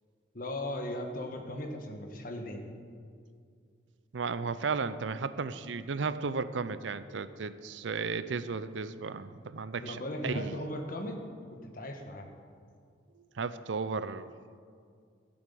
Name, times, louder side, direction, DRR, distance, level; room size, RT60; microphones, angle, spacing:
voice 1, 0.3-2.6 9.8-11.2 11.5-12.3, left 1 dB, 50° left, 3 dB, 1.4 m, -37 dB
voice 2, 4.1-10.0 10.2-10.6 13.2-14.6, right 4 dB, 85° right, 14 dB, 0.5 m, -34 dB
13.5 x 7.8 x 6.9 m, 2.2 s
head